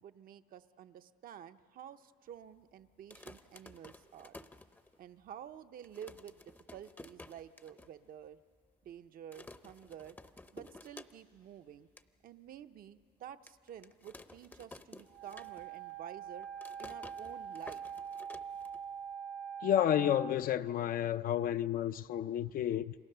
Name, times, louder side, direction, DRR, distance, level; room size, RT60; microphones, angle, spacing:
voice 1, 0.0-4.4 5.0-8.4 8.8-10.2 10.5-11.9 12.2-16.5 16.8-17.8, right 9 dB, 60° right, 0.7 m, -50 dB
sound 1, 2.9-5.2 5.5-5.6 5.8-7.9 8.3-8.4 8.6-8.9 9.3-11.5 11.7-12.1 12.6-12.7 13.5-15.9 16.2-19.1, left 2 dB, 10° left, 0.7 m, -53 dB
Wind instrument woodwind instrument, 15.1-20.4, right 7 dB, 85° right, 0.9 m, -44 dB
voice 2, 19.6-22.9, left 10 dB, 55° left, 0.5 m, -31 dB
29.0 x 24.0 x 6.8 m
cardioid pair, 110°, 17 cm